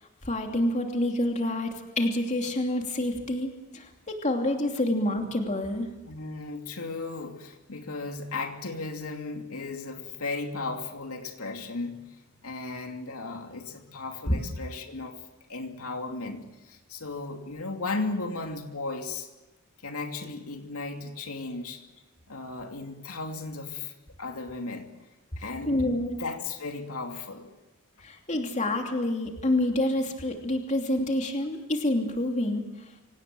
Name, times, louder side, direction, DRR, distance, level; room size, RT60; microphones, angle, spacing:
voice 1, 0.2-5.9 14.3-14.4 25.7-26.2 28.0-32.6, left 1 dB, 35° left, 3 dB, 2.9 m, -27 dB
voice 2, 6.1-12.0 12.4-15.2 15.5-19.3 19.8-21.8 22.3-23.9 24.2-24.9 25.4-27.5, left 3 dB, 85° left, 3 dB, 2.7 m, -35 dB
25.0 x 18.5 x 7.7 m, 1.0 s
head